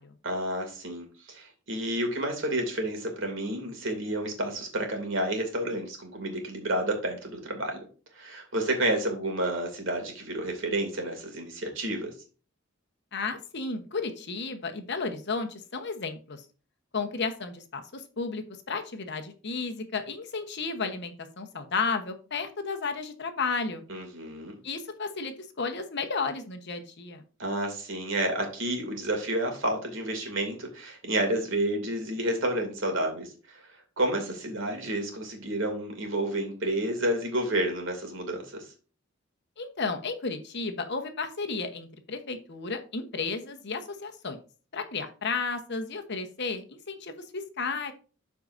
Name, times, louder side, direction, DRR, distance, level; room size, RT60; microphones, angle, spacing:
voice 1, 0.2-7.8 8.1-12.1 23.9-24.6 27.4-33.7 34.0-38.7, right 1 dB, 65° right, 4 dB, 2.4 m, -30 dB
voice 2, 13.1-16.4 16.9-23.8 24.6-27.2 39.6-44.4 44.7-47.9, left 4 dB, 55° left, 6 dB, 1.1 m, -33 dB
12.5 x 4.7 x 2.6 m, 0.36 s
head